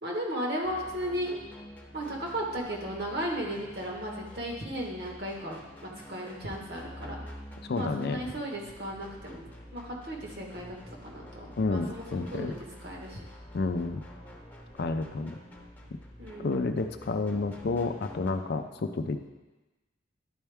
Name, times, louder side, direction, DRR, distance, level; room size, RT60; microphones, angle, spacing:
voice 1, 0.0-1.4 1.9-5.6 5.8-7.2 7.7-12.5 12.8-13.2 16.2-16.5, equal, 55° right, -2 dB, 1.4 m, -35 dB
sound 1, 0.6-18.3, equal, 10° left, 0.9 m, -48 dB
voice 2, 7.7-8.2 11.6-12.5 13.5-14.0 14.8-15.4 16.4-19.3, left 3 dB, 55° left, 8 dB, 0.4 m, -30 dB
11.0 x 4.4 x 3.5 m, 1.1 s
head